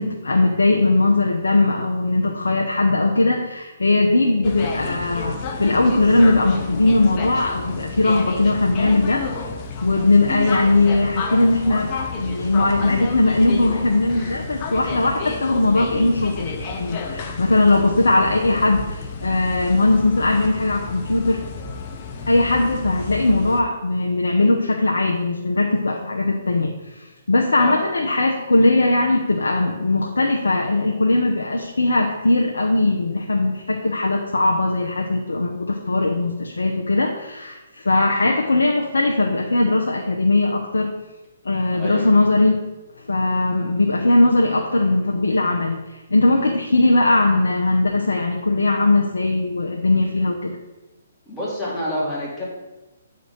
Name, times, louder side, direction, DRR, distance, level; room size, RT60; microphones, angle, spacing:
voice 1, 0.0-9.3 9.8-21.4 22.2-40.9 41.4-42.6 43.1-45.8 46.1-50.5, left 2 dB, 80° left, 1 dB, 0.8 m, -19 dB
sound 1, 4.4-23.6, left 4 dB, 35° left, 0.9 m, -31 dB
voice 2, 14.1-14.4 27.6-27.9 41.7-42.1 51.3-52.4, left 1 dB, 15° left, -7 dB, 2.5 m, -28 dB
9.0 x 4.0 x 5.2 m, 1.1 s
hypercardioid pair, 140°, 0 cm